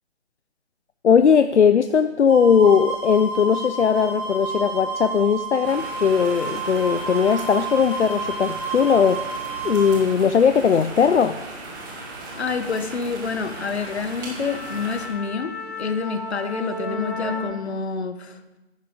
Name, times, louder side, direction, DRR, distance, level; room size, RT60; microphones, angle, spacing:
voice 1, 1.0-11.4, left 7 dB, 85° left, 10 dB, 0.6 m, -19 dB
sound 1, 2.3-10.0, right 4 dB, 65° right, 5.1 m, -31 dB
sound 2, 4.9-5.1 5.5-7.8 8.2-12.0 12.3-12.6 13.0-13.1 13.5-17.4, left 2 dB, 5° left, 5.0 m, -36 dB
sound 3, 5.6-15.1, right 2 dB, 20° right, 1.5 m, -37 dB
voice 2, 12.4-18.4, left 5 dB, 65° left, 10 dB, 1.2 m, -28 dB
14.5 x 10.5 x 3.7 m, 1.1 s
figure-of-eight pair, 155°, 34 cm